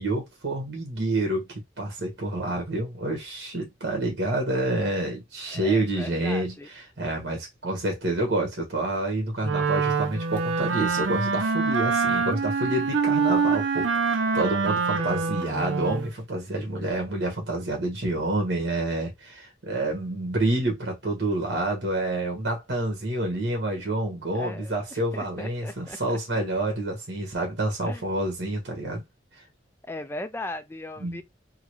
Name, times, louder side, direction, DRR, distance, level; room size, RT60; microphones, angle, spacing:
voice 1, 0.0-1.5 1.8-29.0 29.3-29.4 31.0-31.2, right 2 dB, 60° right, 1.4 m, -28 dB
voice 2, 5.5-6.7 14.7-15.3 24.3-26.2 27.9-28.0 29.8-31.2, left 1 dB, 10° left, 0.4 m, -38 dB
Wind instrument woodwind instrument, 9.4-16.1, right 5 dB, 80° right, 0.6 m, -25 dB
3.7 x 2.2 x 3.1 m
head